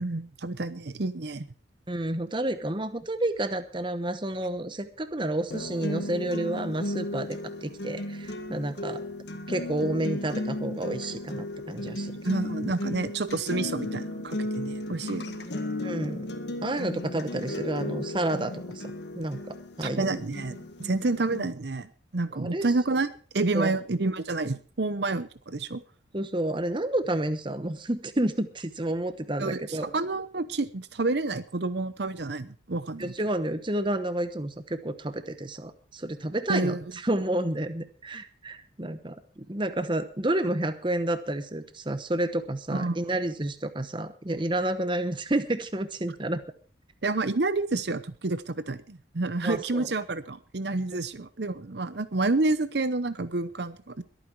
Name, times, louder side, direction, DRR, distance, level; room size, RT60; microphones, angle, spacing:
voice 1, 0.0-1.5 12.2-15.4 19.8-23.1 23.3-25.8 29.4-33.1 36.5-36.8 42.7-43.2 47.0-54.0, right 2 dB, 60° right, 14 dB, 0.8 m, -29 dB
voice 2, 1.9-9.0 9.5-12.1 15.8-16.3 16.6-20.2 22.3-22.7 23.5-23.8 26.1-29.9 33.0-36.8 37.0-46.4 49.4-49.9, right 1 dB, 25° right, 11 dB, 0.9 m, -30 dB
sound 1, 5.5-21.5, left 1 dB, 60° left, 1.8 m, -35 dB
22.0 x 9.3 x 4.7 m, 0.39 s
head